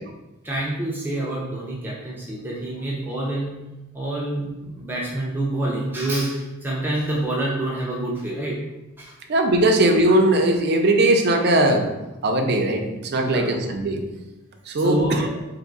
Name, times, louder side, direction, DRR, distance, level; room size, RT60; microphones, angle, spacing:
voice 1, 0.4-3.6 3.9-8.6 9.0-9.1 13.1-13.5 14.8-15.2, right 1 dB, 10° right, -5 dB, 0.6 m, -27 dB
voice 2, 9.3-11.9 12.2-12.8 13.1-14.0 14.7-15.3, right 1 dB, 50° right, 3 dB, 0.5 m, -19 dB
3.6 x 2.6 x 3.9 m, 1.0 s
head